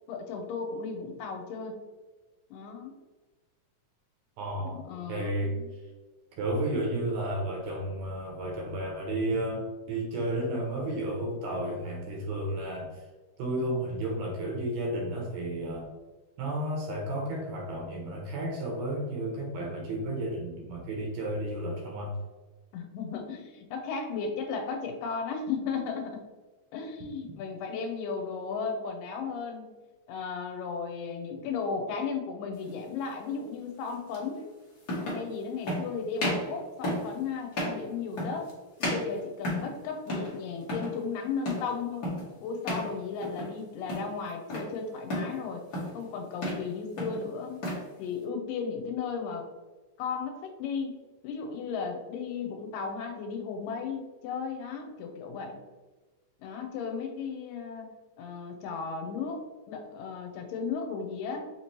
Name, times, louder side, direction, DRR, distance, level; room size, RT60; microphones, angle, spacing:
voice 1, 0.1-1.8 2.5-3.0 4.6-5.7 22.7-26.3 26.7-29.7 30.1-34.5 35.0-38.5 38.8-42.1 42.4-45.6 45.9-47.6 48.0-49.5 50.0-55.6 56.4-61.4, left 5 dB, 85° left, 4 dB, 2.3 m, -35 dB
voice 2, 4.4-5.6 6.4-13.0 13.4-15.9 16.4-22.2, right 1 dB, 75° right, -1 dB, 1.6 m, -32 dB
sound 1, 32.6-32.8 34.1-34.2 34.8-35.3 35.6-35.9 36.2-36.5 36.8-37.1 37.5-37.8 38.2-38.5 38.8-39.8 40.1-40.4 40.6-40.9 41.4-41.7 42.0-42.3 42.6-42.9 43.2-43.6 43.9-44.7 45.1-45.4 45.7-46.0 46.3-46.7 47.0-47.8, left 1 dB, 60° left, 1.0 m, -33 dB
5.5 x 2.9 x 3.0 m, 1.2 s
omnidirectional pair, 3.9 m